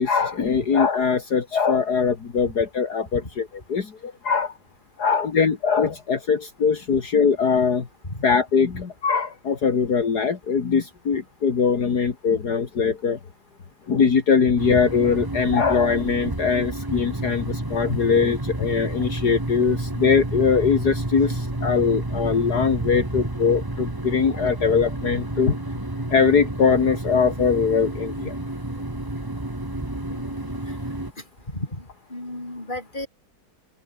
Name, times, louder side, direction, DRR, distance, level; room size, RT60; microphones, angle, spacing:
voice 1, 0.0-3.4 3.7-4.5 5.0-7.9 8.2-13.2 13.9-25.6 26.1-28.3, left 6 dB, 65° left, 2.6 m, -21 dB
sound 1, 14.6-31.1, right 1 dB, 10° right, 2.1 m, -30 dB
voice 2, 30.1-30.6 31.5-33.1, left 1 dB, 25° left, 6.3 m, -34 dB
omnidirectional pair, 1.9 m